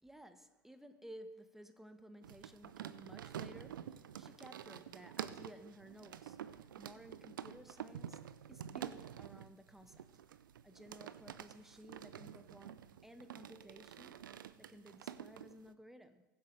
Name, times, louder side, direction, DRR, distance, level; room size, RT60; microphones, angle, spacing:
voice 1, 0.0-10.1 10.6-14.2 14.5-16.2, equal, 5° right, 1.1 m, -56 dB
sound 1, 2.2-15.7, right 9 dB, 75° right, 0.5 m, -49 dB
21.0 x 8.0 x 3.3 m
figure-of-eight pair, 80°, 11 cm